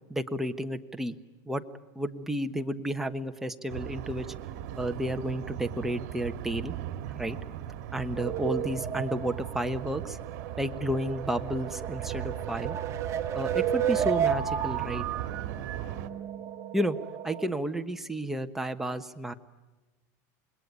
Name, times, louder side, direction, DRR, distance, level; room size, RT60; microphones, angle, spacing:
voice 1, 0.1-1.1 1.4-1.6 1.9-4.3 4.8-6.8 7.2-7.4 7.9-10.2 10.6-12.8 13.3-15.1 16.7-17.0 17.2-19.3, right 1 dB, 5° right, 6 dB, 1.2 m, -32 dB
sound 1, 3.7-16.1, right 11 dB, 65° right, 1.8 m, -38 dB
sound 2, 8.1-17.5, right 9 dB, 35° right, 1.9 m, -33 dB
27.0 x 21.0 x 9.6 m, 1.1 s
supercardioid pair, 140°, 9 cm